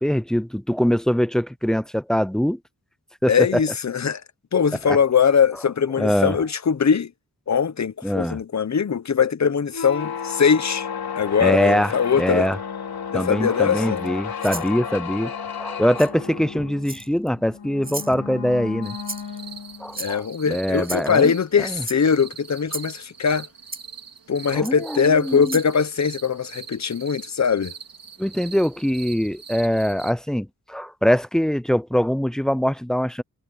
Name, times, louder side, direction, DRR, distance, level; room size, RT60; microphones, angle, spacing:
voice 1, 0.0-2.6 3.2-3.6 4.9-5.0 6.0-6.4 8.0-8.4 11.4-12.6 13.1-19.0 19.8-21.8 24.5-25.6 28.2-33.2, equal, ahead, 0.4 m, -23 dB
voice 2, 3.3-4.2 4.5-7.1 7.5-10.9 11.2-12.5 13.1-14.0 20.0-23.5 24.3-27.7, left 6 dB, 50° left, 0.9 m, -21 dB
sound 1, 9.7-20.0, left 7 dB, 80° left, 3.6 m, -32 dB
Rattle (instrument), 14.4-14.7 16.0-16.1 16.8-17.3 17.8-18.1 19.0-19.4 19.9-20.4 20.8-21.1 21.8-22.0 22.7-22.9 23.7-23.8 24.6-24.7 25.4-25.7, right 2 dB, 25° right, 7.2 m, -33 dB
sound 2, 18.8-30.1, right 6 dB, 70° right, 3.6 m, -42 dB
wide cardioid pair, 100°, 36 cm